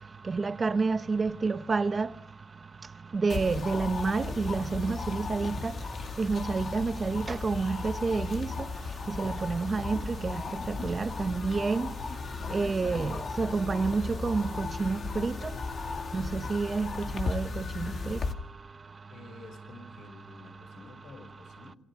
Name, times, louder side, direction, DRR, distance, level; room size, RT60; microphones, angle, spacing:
voice 1, 0.3-2.1 3.1-5.7 6.2-8.5 9.1-10.4 10.7-11.9 12.5-15.5 16.1-18.2, right 4 dB, 35° right, 0.9 m, -29 dB
sound 1, 3.3-18.3, left 4 dB, 50° left, 2.4 m, -36 dB
voice 2, 19.1-21.8, left 4 dB, 75° left, 6.3 m, -50 dB
29.5 x 27.5 x 3.8 m
cardioid pair, 90°, 0 cm